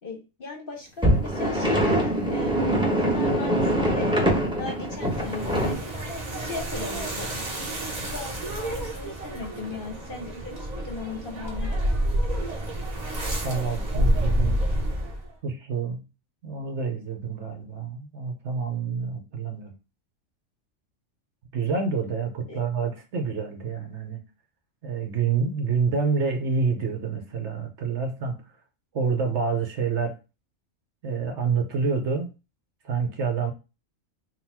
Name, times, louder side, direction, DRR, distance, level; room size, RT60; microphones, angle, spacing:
voice 1, 0.0-2.9 3.1-4.2 4.6-7.4 8.0-11.8 22.5-22.6, left 3 dB, 50° left, 0.9 m, -37 dB
sound 1, 1.0-5.7, right 1 dB, 5° right, 0.8 m, -23 dB
sound 2, 4.9-15.3, equal, 35° right, 0.9 m, -29 dB
voice 2, 13.4-14.6 15.4-16.1 16.4-19.7 21.5-24.2 24.8-28.4 28.9-30.2 31.0-32.3 32.8-33.5, right 5 dB, 60° right, 1.0 m, -27 dB
4.0 x 2.3 x 4.1 m
omnidirectional pair, 1.4 m